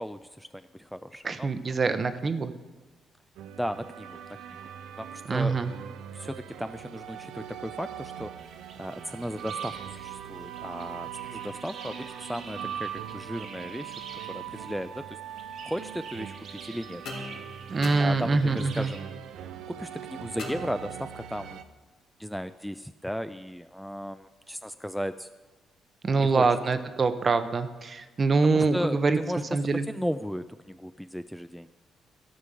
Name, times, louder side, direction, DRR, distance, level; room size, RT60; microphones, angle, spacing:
voice 1, 0.0-1.5 3.6-4.2 5.0-5.6 6.1-8.3 8.8-13.9 14.3-15.0 15.6-17.0 18.0-19.1 19.7-21.6 22.2-25.3 26.2-26.5 28.4-29.4 29.9-31.8, equal, ahead, 11 dB, 0.3 m, -35 dB
voice 2, 1.2-2.5 5.3-5.7 17.7-18.9 26.0-29.2 29.5-29.9, right 4 dB, 35° right, 11 dB, 0.8 m, -25 dB
sound 1, 3.4-21.6, right 9 dB, 85° right, 0.6 m, -41 dB
sound 2, 8.4-19.0, right 4 dB, 65° right, 1.5 m, -48 dB
sound 3, 17.0-18.7 20.4-21.3, left 2 dB, 80° left, 2.3 m, -41 dB
13.0 x 5.2 x 7.5 m, 1.2 s
cardioid pair, 90°, 0 cm